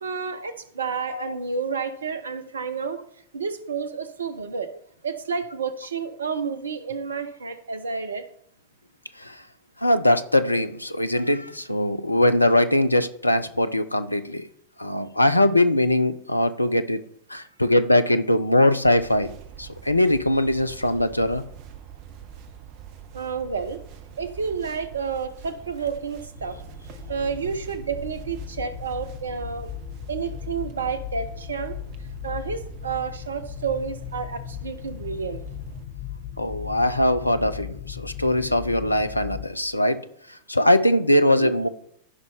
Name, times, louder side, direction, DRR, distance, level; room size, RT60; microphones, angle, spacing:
voice 1, 0.0-3.0 3.3-4.7 5.0-8.2 23.1-23.8 24.2-26.6 27.1-29.7 30.1-31.8 32.2-35.4 41.3-41.5, right 5 dB, 70° right, 11 dB, 0.8 m, -30 dB
voice 2, 9.8-14.4 14.8-17.0 17.3-19.3 19.6-21.4 36.4-40.0 40.5-41.7, left 1 dB, 85° left, 12 dB, 0.6 m, -21 dB
sound 1, 18.8-35.8, right 7 dB, 45° right, 0.9 m, -44 dB
sound 2, 26.3-39.5, left 11 dB, 50° left, 1.0 m, -38 dB
15.0 x 5.4 x 3.4 m, 0.70 s
figure-of-eight pair, 90°, 0 cm